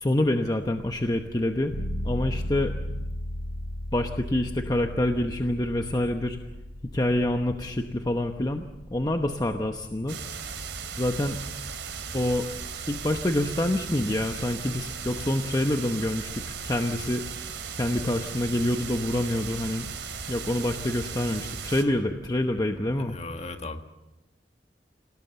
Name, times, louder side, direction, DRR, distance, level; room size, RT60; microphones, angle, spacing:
voice 1, 0.0-1.7 2.0-2.7 3.9-6.4 6.9-10.2 11.0-11.4 12.1-12.5 12.9-17.2 17.8-19.9 20.3-23.1, left 1 dB, 20° left, 5 dB, 0.9 m, -26 dB
sound 1, 1.7-12.3, left 1 dB, 75° left, 6.5 m, -37 dB
sound 2, 10.1-21.8, right 6 dB, 85° right, 3.2 m, -37 dB
voice 2, 23.1-23.8, left 2 dB, 35° left, 6 dB, 1.6 m, -36 dB
27.5 x 18.0 x 7.0 m, 1.0 s
head